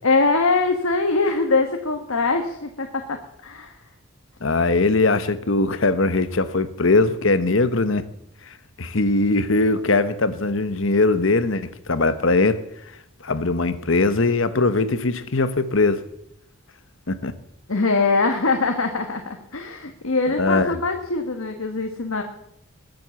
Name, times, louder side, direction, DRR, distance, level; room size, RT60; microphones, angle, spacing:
voice 1, 0.0-3.8 17.7-22.2, left 3 dB, 80° left, 1.6 m, -22 dB
voice 2, 4.4-8.0 8.8-12.6 13.2-16.0 17.1-17.3 20.4-20.7, left 3 dB, 65° left, 1.1 m, -20 dB
20.5 x 7.9 x 7.0 m
head